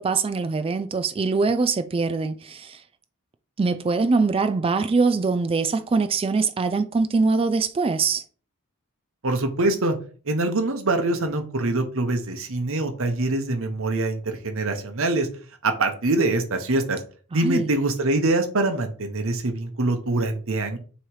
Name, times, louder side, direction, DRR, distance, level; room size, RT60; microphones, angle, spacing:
voice 1, 0.0-2.8 3.6-8.2 17.3-17.7, right 4 dB, 25° right, 0.3 m, -23 dB
voice 2, 9.2-10.0 10.2-15.3 15.6-17.0 17.3-20.8, right 2 dB, 65° right, 1.0 m, -24 dB
6.4 x 3.1 x 4.7 m
head